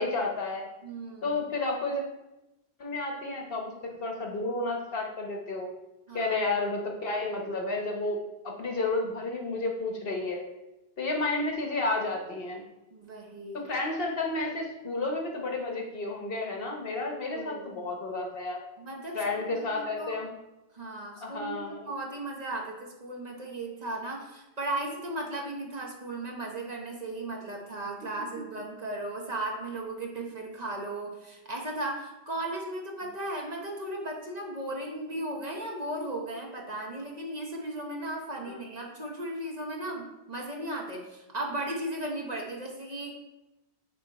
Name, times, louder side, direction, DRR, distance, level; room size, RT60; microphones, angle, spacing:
voice 1, 0.0-0.6 1.2-2.0 2.8-5.7 6.1-10.4 11.0-12.6 13.6-18.6 19.1-20.3 21.2-21.8 38.5-38.6, left 2 dB, 65° left, 1 dB, 1.2 m, -31 dB
voice 2, 0.8-1.4 6.1-6.3 12.9-13.6 17.3-17.7 18.8-19.2 19.5-20.2 20.7-43.1, right 1 dB, 40° right, 0 dB, 1.1 m, -36 dB
9.2 x 3.1 x 4.1 m, 0.96 s
omnidirectional pair, 1.1 m